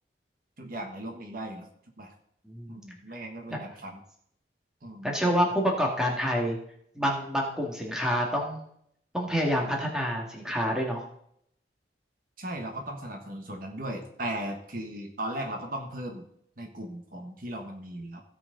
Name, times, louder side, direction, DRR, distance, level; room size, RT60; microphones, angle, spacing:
voice 1, 0.6-1.7 2.0-2.1 2.7-4.0 4.8-5.1 12.4-16.2 16.6-18.2, right 1 dB, 50° right, 3 dB, 1.4 m, -37 dB
voice 2, 2.5-2.8 3.5-3.6 5.0-6.6 7.0-8.6 9.1-11.0, equal, 5° right, -1 dB, 2.0 m, -27 dB
16.5 x 6.1 x 4.0 m, 0.69 s
head